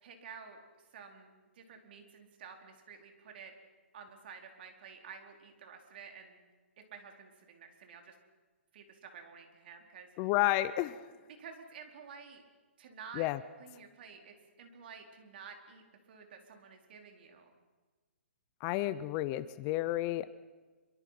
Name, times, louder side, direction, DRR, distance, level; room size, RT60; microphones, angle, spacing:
voice 1, 0.0-0.6 0.9-3.5 3.9-6.4 6.9-8.2 8.7-10.3 11.4-12.4 12.8-13.3 13.6-17.5, right 6 dB, 50° right, 4 dB, 4.5 m, -51 dB
voice 2, 10.2-11.1 13.2-13.4 18.6-20.3, left 16 dB, 25° left, 15 dB, 0.7 m, -31 dB
26.5 x 24.5 x 6.0 m, 1.4 s
hypercardioid pair, 155°, 7 cm